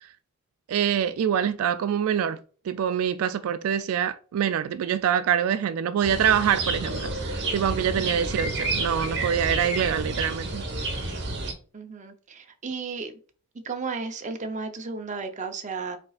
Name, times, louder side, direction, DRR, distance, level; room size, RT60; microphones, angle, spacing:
voice 1, 0.7-2.4 2.6-10.6, right 8 dB, 75° right, 0.3 m, -25 dB
sound 1, 6.0-11.5, right 2 dB, 55° right, 1.3 m, -30 dB
voice 2, 8.0-8.4 11.7-13.1 13.6-16.0, right 4 dB, 35° right, 0.7 m, -34 dB
5.2 x 4.2 x 2.4 m
head